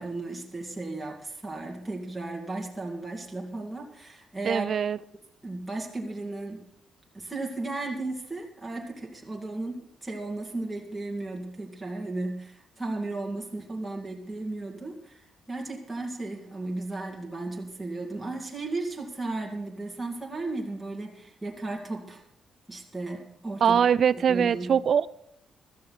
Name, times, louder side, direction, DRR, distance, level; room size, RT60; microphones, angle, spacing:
voice 1, 0.0-4.7 5.4-6.6 7.1-22.2 22.7-23.8 24.3-24.8, right 2 dB, 5° right, 2.1 m, -35 dB
voice 2, 4.4-5.0 23.6-25.1, right 7 dB, 50° right, 0.4 m, -22 dB
16.0 x 13.0 x 4.0 m
cardioid pair, 135°, 0 cm